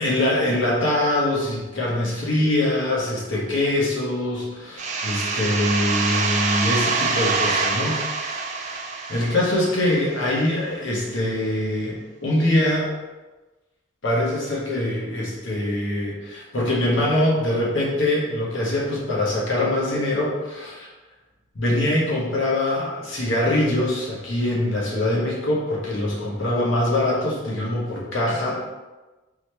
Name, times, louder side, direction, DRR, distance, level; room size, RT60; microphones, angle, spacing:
voice 1, 0.0-8.0 8.5-12.9 14.0-20.9 21.5-28.6, left 1 dB, 65° left, -4 dB, 1.1 m, -23 dB
sound 1, 4.8-10.3, right 4 dB, 35° right, 0.3 m, -25 dB
3.9 x 3.1 x 3.2 m, 1.2 s
head